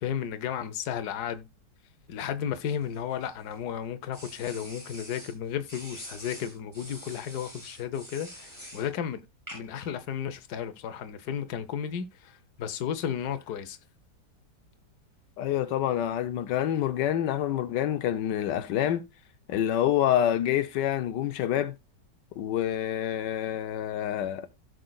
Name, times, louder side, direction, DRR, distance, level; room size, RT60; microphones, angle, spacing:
voice 1, 0.0-1.5 2.1-9.2 9.5-13.8, left 8 dB, 70° left, 1.4 m, -33 dB
sound 1, 2.5-3.5 4.1-5.3 5.7-8.9 9.5-9.9, equal, 10° right, 6.5 m, -45 dB
voice 2, 15.4-19.0 19.5-21.7 22.4-24.5, left 11 dB, 90° left, 1.4 m, -27 dB
16.5 x 6.5 x 2.3 m
omnidirectional pair, 1.8 m